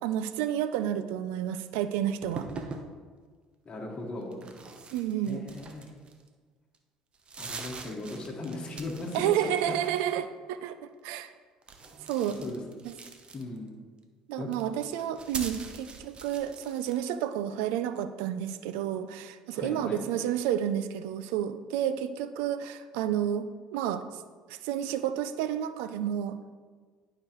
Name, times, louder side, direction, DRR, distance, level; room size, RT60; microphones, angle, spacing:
voice 1, 0.0-2.5 4.9-5.4 9.1-11.3 12.1-12.4 12.8-12.9 14.3-24.0 24.5-26.6, right 10 dB, 80° right, 12 dB, 0.4 m, -30 dB
sound 1, 2.2-2.9 4.3-6.3 6.7-6.8 7.1-9.3 9.5-10.1 11.6-13.7 14.4-17.0, right 4 dB, 40° right, 0.9 m, -42 dB
voice 2, 3.6-4.3 5.2-5.9 7.4-9.8 12.4-12.6 13.3-13.8 14.4-14.5 19.5-20.0, left 2 dB, 35° left, -3 dB, 1.5 m, -37 dB
11.5 x 4.8 x 3.1 m, 1.5 s
supercardioid pair, 75°, 3 cm